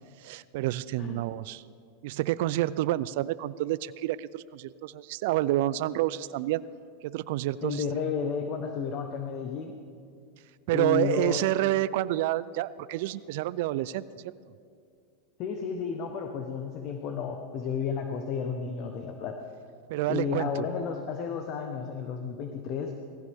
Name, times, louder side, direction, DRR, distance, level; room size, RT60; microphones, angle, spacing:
voice 1, 0.2-1.6 2.0-6.6 7.0-7.8 10.7-14.3 19.9-20.7, right 15 dB, 65° right, 17 dB, 0.4 m, -29 dB
voice 2, 7.6-9.7 10.7-11.4 15.4-19.4 20.1-22.9, left 6 dB, 45° left, 5 dB, 1.1 m, -32 dB
18.5 x 15.5 x 3.6 m, 2.3 s
supercardioid pair, 125°, 0 cm